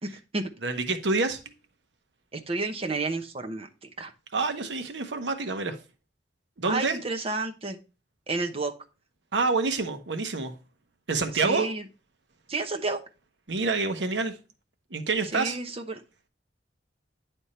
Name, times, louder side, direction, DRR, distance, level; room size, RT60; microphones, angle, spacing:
voice 1, 0.0-0.4 2.3-4.1 6.6-7.8 8.3-8.7 11.4-11.8 12.5-13.0 15.3-16.0, right 3 dB, 35° right, 0.9 m, -31 dB
voice 2, 0.6-1.4 4.3-5.8 6.6-7.0 9.3-10.5 11.1-11.7 13.5-14.4 14.9-15.6, right 3 dB, 90° right, 0.9 m, -27 dB
9.8 x 3.5 x 4.3 m
head